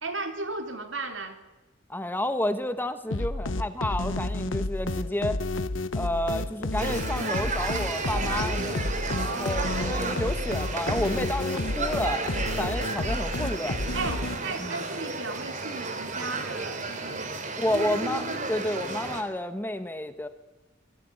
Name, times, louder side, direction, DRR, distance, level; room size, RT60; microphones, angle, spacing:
voice 1, 0.0-1.4 9.0-9.9 13.9-17.4 17.7-18.4, right 3 dB, 70° right, 6 dB, 3.4 m, -36 dB
voice 2, 1.9-5.4 5.9-8.8 9.2-13.8 14.6-14.7 17.6-20.3, left 1 dB, 10° left, 10 dB, 1.3 m, -30 dB
sound 1, 3.1-14.7, left 2 dB, 80° left, 1.2 m, -31 dB
sound 2, 6.8-19.2, right 3 dB, 40° right, 3.3 m, -33 dB
26.0 x 21.0 x 9.8 m, 1.1 s
head